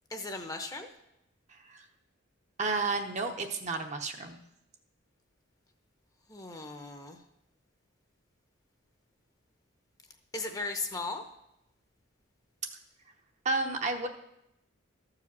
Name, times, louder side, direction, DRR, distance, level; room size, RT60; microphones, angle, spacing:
voice 1, 0.1-0.9 6.3-7.2 10.3-11.2, left 3 dB, 15° left, 5 dB, 0.8 m, -37 dB
voice 2, 2.6-4.4 13.4-14.1, right 3 dB, 35° right, 5 dB, 0.8 m, -31 dB
13.0 x 4.9 x 7.3 m, 0.83 s
head